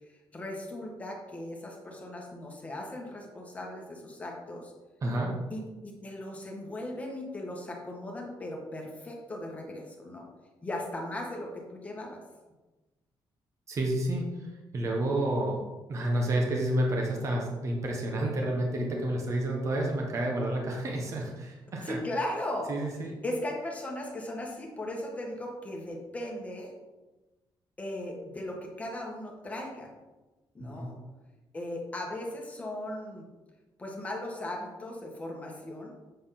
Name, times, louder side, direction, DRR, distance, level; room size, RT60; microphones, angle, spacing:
voice 1, 0.1-4.7 5.5-10.3 10.6-12.2 21.8-22.7 23.2-26.7 27.8-29.9 30.5-30.9 31.5-33.3 33.8-35.9, left 1 dB, 15° left, 0 dB, 1.5 m, -37 dB
voice 2, 5.0-5.3 13.7-15.6 15.9-22.0 22.7-23.2 30.8-30.9, right 1 dB, 35° right, 0 dB, 1.2 m, -30 dB
7.8 x 4.6 x 5.8 m, 1.1 s
cardioid pair, 175°, 9 cm